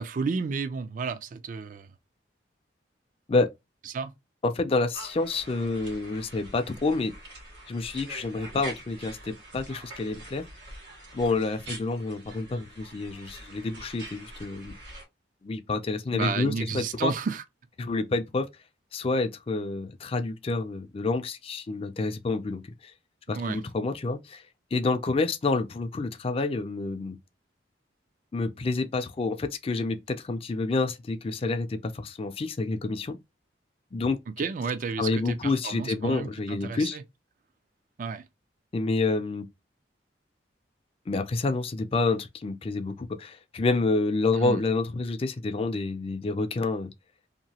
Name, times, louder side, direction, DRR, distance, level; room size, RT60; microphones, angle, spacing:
voice 1, 0.0-1.9 3.9-4.1 16.1-17.4 23.3-23.6 34.4-37.0 38.0-38.2 44.4-44.6, right 5 dB, 45° right, 0.4 m, -32 dB
voice 2, 4.4-7.1 7.7-10.4 11.1-14.7 15.4-17.1 17.8-18.5 18.9-22.7 23.3-24.4 24.7-27.2 28.3-33.2 33.9-34.2 35.0-37.0 38.7-39.5 41.1-46.9, left 3 dB, 30° left, 0.4 m, -28 dB
sound 1, 4.9-15.0, right 1 dB, 80° right, 1.3 m, -44 dB
2.9 x 2.2 x 2.7 m
head